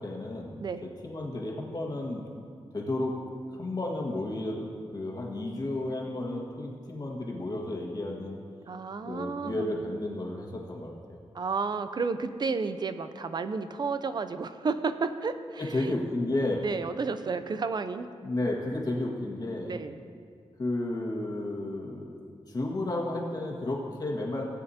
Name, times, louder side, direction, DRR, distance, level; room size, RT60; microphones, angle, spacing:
voice 1, 0.0-0.6 1.0-2.3 2.7-3.2 3.5-8.4 9.1-11.2 15.6-16.6 18.2-19.8 20.6-22.1 22.5-24.4, left 2 dB, 35° left, -2 dB, 1.6 m, -32 dB
voice 2, 8.7-9.7 11.3-16.0 16.6-18.1 19.7-20.0, right 4 dB, 40° right, 11 dB, 0.5 m, -32 dB
17.0 x 8.9 x 2.8 m, 2.2 s
wide cardioid pair, 140°, 11 cm